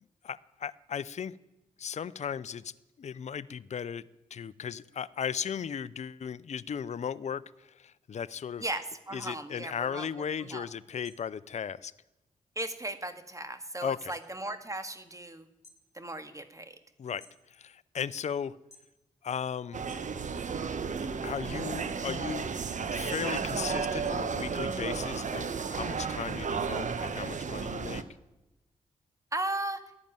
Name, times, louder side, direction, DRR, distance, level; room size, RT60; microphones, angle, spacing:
voice 1, 0.2-1.4 1.8-4.0 4.3-8.6 9.1-11.9 13.8-14.1 17.0-18.5 19.2-19.8 21.2-22.5 22.9-28.0, left 7 dB, 50° left, 16 dB, 0.6 m, -36 dB
voice 2, 8.6-10.1 10.4-10.7 12.6-15.5 15.9-16.8 29.3-29.8, right 2 dB, 20° right, 9 dB, 1.9 m, -36 dB
sound 1, 11.0-12.2 12.5-14.3 14.7-15.1 15.5-17.7 18.1-19.0 19.3-20.5 21.0-25.5, left 2 dB, 15° left, 4.1 m, -60 dB
sound 2, 19.7-28.0, right 5 dB, 55° right, 1.2 m, -33 dB
14.5 x 11.0 x 9.0 m, 0.97 s
supercardioid pair, 45°, 15 cm